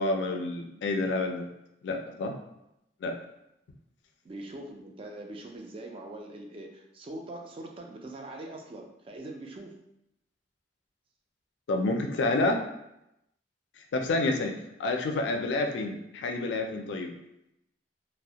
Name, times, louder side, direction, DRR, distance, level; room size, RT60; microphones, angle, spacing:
voice 1, 0.0-1.5 1.8-2.3 3.0-3.2 11.7-12.6 13.9-17.1, left 2 dB, 85° left, 4 dB, 0.3 m, -29 dB
voice 2, 4.2-9.7, right 1 dB, 30° right, 2 dB, 0.3 m, -42 dB
2.3 x 2.0 x 2.7 m, 0.84 s
head